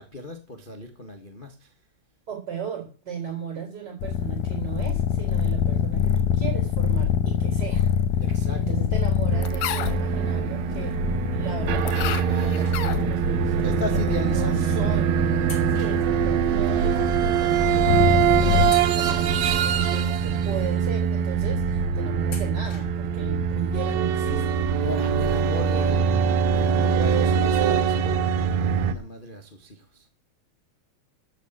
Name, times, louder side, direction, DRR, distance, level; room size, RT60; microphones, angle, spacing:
voice 1, 0.0-1.7 8.2-8.8 13.6-14.7 24.8-26.1 26.5-30.1, left 3 dB, 60° left, 0.5 m, -36 dB
voice 2, 2.3-7.9 8.6-11.0 11.3-15.3 15.7-24.7, right 7 dB, 30° right, 4.5 m, -35 dB
sound 1, 4.0-18.7, left 8 dB, 80° left, 2.4 m, -26 dB
sound 2, 9.3-28.9, right 7 dB, 70° right, 2.0 m, -23 dB
sound 3, 12.6-13.4 14.2-14.4 15.4-16.9 17.2-17.3 18.0-18.2 18.6-20.0 20.5-20.6 22.3-23.2 23.5-23.6 24.8-24.9 25.2-25.3, left 2 dB, 30° left, 3.8 m, -45 dB
14.5 x 6.6 x 8.0 m
omnidirectional pair, 3.6 m